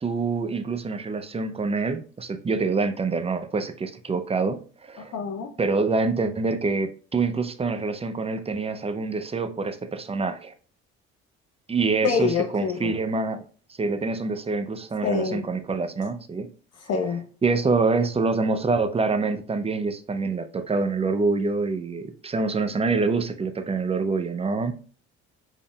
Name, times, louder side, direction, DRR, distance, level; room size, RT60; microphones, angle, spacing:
voice 1, 0.0-5.2 5.6-10.5 11.7-13.4 13.8-16.5 17.4-24.8, right 4 dB, 20° right, 0.5 m, -26 dB
voice 2, 5.0-5.5 12.0-12.9 15.0-15.4 16.9-17.2, left 5 dB, 50° left, 0.8 m, -26 dB
5.1 x 3.6 x 2.2 m
hypercardioid pair, 65°, 32 cm